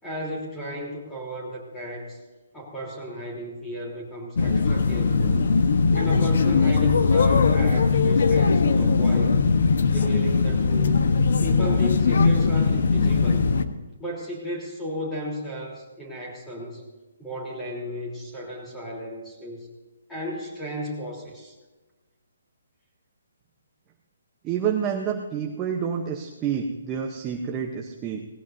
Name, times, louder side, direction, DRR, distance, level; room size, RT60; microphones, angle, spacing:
voice 1, 0.0-2.2 2.5-5.4 5.9-9.4 9.9-11.0 11.4-13.5 14.0-16.8 17.2-19.7 20.1-21.5, equal, 5° left, -4 dB, 3.4 m, -34 dB
sound 1, 4.4-13.6, left 4 dB, 60° left, 1.1 m, -20 dB
voice 2, 24.4-28.3, right 7 dB, 15° right, 1 dB, 0.8 m, -28 dB
19.0 x 16.5 x 2.7 m, 1.2 s
hypercardioid pair, 170°, 0 cm